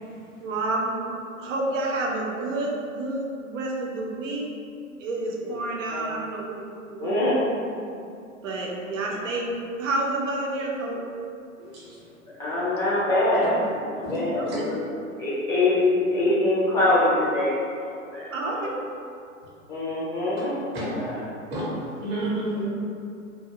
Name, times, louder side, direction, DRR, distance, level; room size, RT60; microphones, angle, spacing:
voice 1, 0.4-4.5 5.0-7.9 8.4-11.0 14.4-14.5 18.3-18.7, right 2 dB, 65° right, -2 dB, 0.6 m, -29 dB
voice 2, 7.0-7.4 12.4-13.5 13.9-14.8 15.2-18.3 18.6-18.7 19.7-21.1, left 2 dB, 10° left, -10 dB, 0.5 m, -24 dB
voice 3, 11.6-12.0 13.4-13.5 14.0-14.2 14.5-14.6 20.7-20.9 21.5-21.7 22.0-22.6, right 1 dB, 25° right, -7 dB, 0.8 m, -30 dB
2.5 x 2.2 x 2.8 m, 2.5 s
hypercardioid pair, 120°, 41 cm